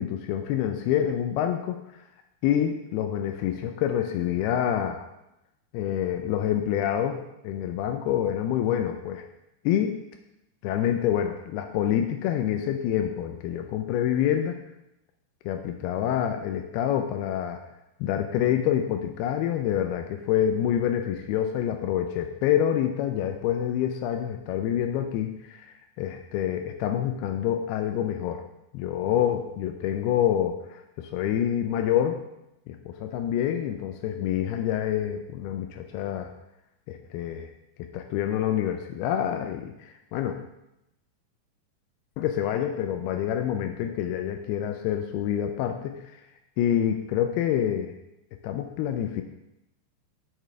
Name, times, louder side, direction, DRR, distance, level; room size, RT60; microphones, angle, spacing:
voice 1, 0.0-1.8 2.4-5.1 5.7-9.2 9.7-10.0 10.6-14.6 15.5-17.6 18.0-28.4 28.7-32.2 32.7-36.3 36.9-37.5 37.9-40.4 42.2-46.0 46.6-47.9 48.4-49.2, left 10 dB, 85° left, 6 dB, 2.3 m, -27 dB
11.0 x 6.7 x 3.3 m, 0.88 s
omnidirectional pair, 5.1 m